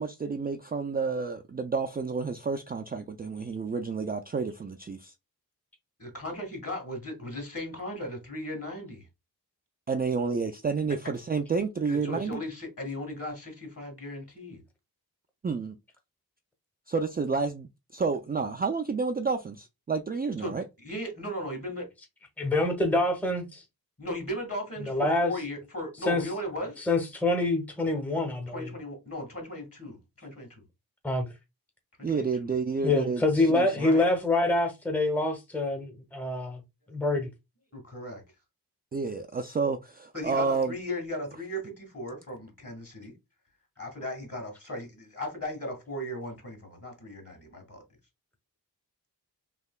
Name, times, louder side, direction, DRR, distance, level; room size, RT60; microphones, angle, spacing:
voice 1, 0.0-5.1 9.9-12.4 15.4-15.8 16.9-20.6 32.0-33.8 38.9-40.7, right 4 dB, 25° right, 0.3 m, -30 dB
voice 2, 6.0-9.1 11.9-14.6 20.4-21.9 24.0-26.8 28.5-30.6 32.0-32.5 33.7-34.1 37.7-38.2 40.1-43.1 43.8-47.8, left 1 dB, 35° left, 1.7 m, -37 dB
voice 3, 22.4-23.6 24.9-25.3 26.1-26.2 26.9-28.7 31.0-31.3 32.8-36.6 36.9-37.3, left 2 dB, 5° left, 0.8 m, -26 dB
3.2 x 2.7 x 2.2 m
cardioid pair, 40°, 39 cm